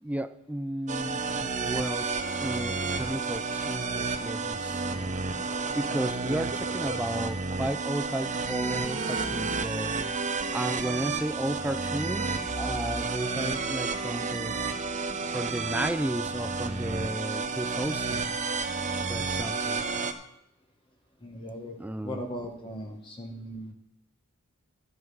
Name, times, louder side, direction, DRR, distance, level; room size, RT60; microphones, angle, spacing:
voice 1, 0.0-2.1 2.3-5.1 5.8-9.9 10.5-14.6 15.3-18.4 19.1-19.8 21.8-22.2, right 1 dB, 5° right, 12 dB, 0.4 m, -33 dB
sound 1, 0.9-20.1, right 4 dB, 35° right, 0.8 m, -31 dB
sound 2, 9.1-10.8 12.4-14.2, equal, 85° left, 2.6 m, -42 dB
voice 2, 21.2-21.8 22.0-23.7, equal, 25° left, 2 dB, 1.3 m, -38 dB
13.0 x 7.8 x 5.5 m, 0.77 s
head